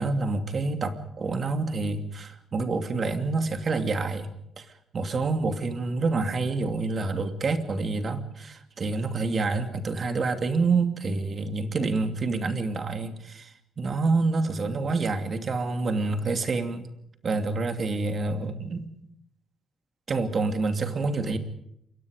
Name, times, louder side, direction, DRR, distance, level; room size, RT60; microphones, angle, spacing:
voice 1, 0.0-4.3 4.6-4.7 4.9-16.9 17.2-18.9 20.1-21.4, right 3 dB, 40° right, 8 dB, 2.7 m, -27 dB
28.0 x 23.5 x 5.2 m, 0.75 s
cardioid pair, 110°, 0 cm